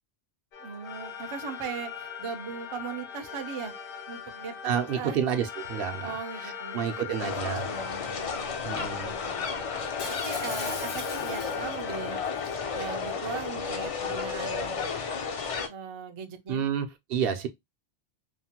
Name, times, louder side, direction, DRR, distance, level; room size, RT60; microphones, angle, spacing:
sound 1, 0.5-14.3, left 8 dB, 65° left, 0.9 m, -41 dB
voice 1, 0.6-3.7 4.1-5.2 6.0-12.2 12.7-14.8 15.7-16.7, right 6 dB, 50° right, 0.3 m, -39 dB
voice 2, 4.6-6.1 6.4-7.7 8.6-9.1 16.5-17.5, right 8 dB, 70° right, 0.7 m, -30 dB
sound 2, 7.2-15.7, left 5 dB, 50° left, 0.4 m, -33 dB
Shatter, 10.0-11.8 12.2-12.5, left 3 dB, 85° left, 1.1 m, -39 dB
3.0 x 2.1 x 2.7 m
omnidirectional pair, 1.1 m